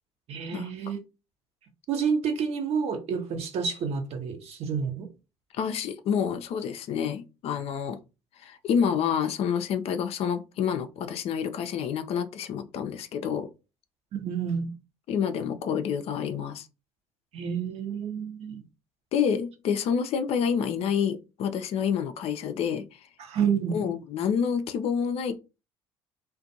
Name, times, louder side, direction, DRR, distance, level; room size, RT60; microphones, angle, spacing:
voice 1, 0.3-1.0 1.9-5.1 14.1-14.7 17.3-18.6 23.2-23.8, right 6 dB, 55° right, 0.7 m, -29 dB
voice 2, 5.6-8.0 8.4-13.5 15.1-16.7 19.1-22.8 23.7-25.3, left 7 dB, 55° left, 0.4 m, -28 dB
2.5 x 2.2 x 2.6 m
hypercardioid pair, 60°, 13 cm